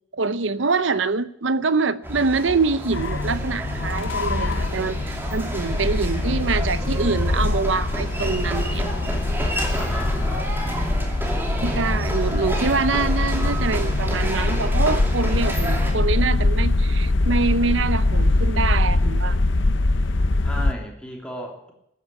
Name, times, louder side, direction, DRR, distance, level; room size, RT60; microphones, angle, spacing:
voice 1, 0.1-8.9 11.6-19.4, right 4 dB, 75° right, 0.8 m, -25 dB
sound 1, 2.0-15.9, right 1 dB, 10° right, 2.6 m, -30 dB
sound 2, 2.9-20.7, left 2 dB, 75° left, 0.8 m, -23 dB
voice 2, 9.7-10.5 20.4-21.7, equal, 5° left, 3.2 m, -35 dB
13.0 x 9.9 x 9.7 m
head